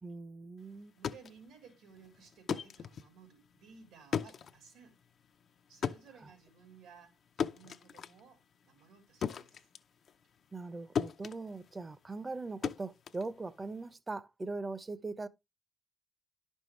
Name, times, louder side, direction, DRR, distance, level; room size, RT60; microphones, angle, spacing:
voice 1, 0.0-0.9 10.5-15.3, right 3 dB, 25° right, 0.7 m, -41 dB
Waterbottle grab squeeze, 0.8-10.7 11.0-13.9, left 7 dB, 55° left, 0.6 m, -39 dB
voice 2, 0.9-5.0 5.7-9.7, right 6 dB, 85° right, 3.3 m, -58 dB
10.5 x 5.5 x 3.1 m
cardioid pair, 90°, 0 cm